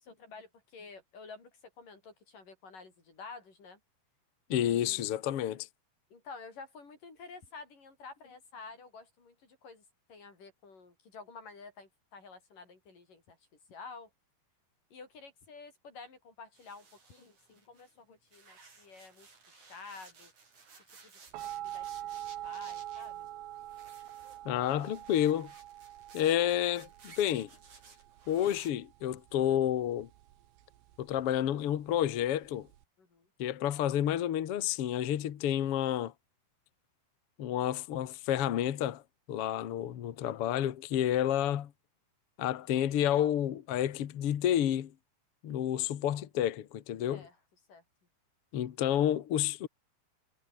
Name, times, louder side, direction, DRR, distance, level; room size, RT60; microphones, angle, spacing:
voice 1, 0.0-1.5 1.8-3.8 4.6-5.1 6.1-9.8 10.1-13.4 13.7-14.1 14.9-20.3 20.9-21.1 21.4-22.2 22.4-23.3 33.0-33.3 47.1-47.4 47.7-47.8, left 4 dB, 55° left, 8.0 m, -50 dB
voice 2, 4.5-5.7 24.4-25.5 26.1-27.5 28.3-30.1 31.0-32.7 33.4-36.1 37.4-39.0 39.3-41.7 42.4-44.9 45.4-47.2 48.5-49.7, left 11 dB, 70° left, 1.3 m, -30 dB
sound 1, 16.5-17.9 18.3-28.7, right 4 dB, 45° right, 7.0 m, -57 dB
sound 2, 21.3-32.8, right 13 dB, 85° right, 3.6 m, -45 dB
omnidirectional pair, 4.7 m